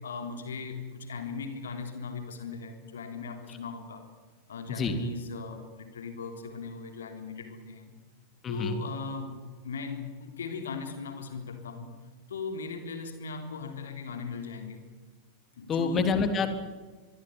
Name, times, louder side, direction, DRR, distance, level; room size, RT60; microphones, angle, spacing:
voice 1, 0.0-4.1 4.5-8.0 8.5-9.4 9.6-11.9 12.3-14.8 15.6-16.1, left 4 dB, 65° left, 6 dB, 3.5 m, -38 dB
voice 2, 8.4-8.8 15.7-16.5, left 4 dB, 25° left, 8 dB, 3.3 m, -27 dB
24.0 x 23.5 x 9.6 m, 1.4 s
figure-of-eight pair, 90°, 0 cm